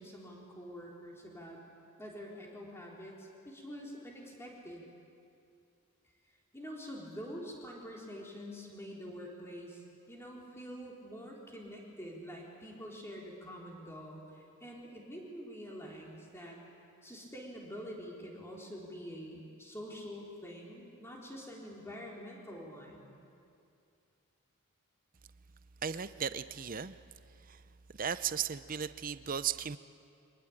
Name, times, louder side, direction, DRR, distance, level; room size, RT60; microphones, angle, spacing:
voice 1, 0.0-1.6 2.0-4.8 6.5-16.6 17.0-23.1, equal, 10° left, -3 dB, 4.0 m, -46 dB
voice 2, 25.8-27.0 27.5-27.6 27.9-29.8, right 7 dB, 40° right, 14 dB, 0.6 m, -36 dB
24.5 x 20.0 x 8.8 m, 2.5 s
head